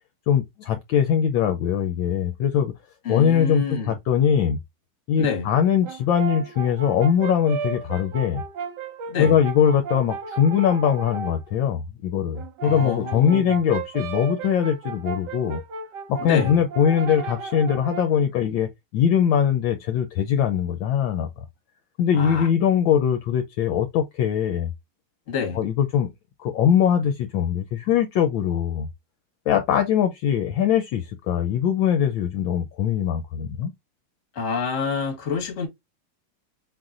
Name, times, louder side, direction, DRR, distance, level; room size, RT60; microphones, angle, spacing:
voice 1, 0.3-2.7 3.1-4.6 5.1-8.4 9.2-15.6 16.1-21.3 22.0-24.7 25.5-26.1 26.4-28.9 29.5-33.7, left 8 dB, 70° left, 1.3 m, -21 dB
voice 2, 3.0-3.9 5.2-5.5 9.1-9.4 12.6-13.4 16.2-16.6 22.1-22.5 25.3-25.6 34.3-35.7, left 5 dB, 40° left, 1.4 m, -27 dB
Brass instrument, 5.8-11.4 12.3-18.2, right 5 dB, 60° right, 1.3 m, -34 dB
4.7 x 3.9 x 2.4 m
omnidirectional pair, 2.4 m